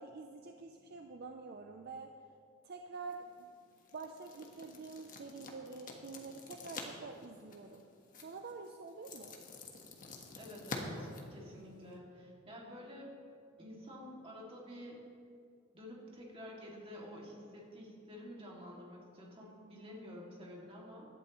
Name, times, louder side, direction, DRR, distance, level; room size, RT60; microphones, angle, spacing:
voice 1, 0.0-2.1 2.6-3.5 3.9-7.9 8.2-9.4, right 4 dB, 50° right, 4 dB, 0.6 m, -47 dB
sound 1, 2.9-12.0, left 3 dB, 45° left, 1.4 m, -49 dB
voice 2, 10.4-13.2 13.6-15.0 15.7-21.1, equal, 30° right, -3 dB, 2.3 m, -50 dB
17.5 x 12.0 x 3.1 m, 2.5 s
head